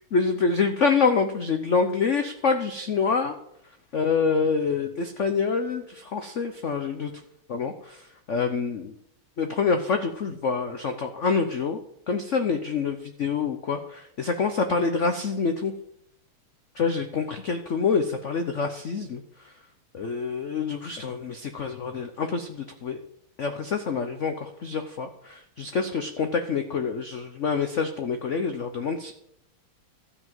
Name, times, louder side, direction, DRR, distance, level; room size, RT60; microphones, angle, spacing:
voice 1, 0.0-3.3 3.9-7.1 7.5-8.9 9.4-11.8 12.1-15.7 16.8-19.2 19.9-23.0 23.4-29.1, left 5 dB, 85° left, 6 dB, 0.6 m, -26 dB
13.5 x 5.1 x 7.5 m, 0.74 s
omnidirectional pair, 2.4 m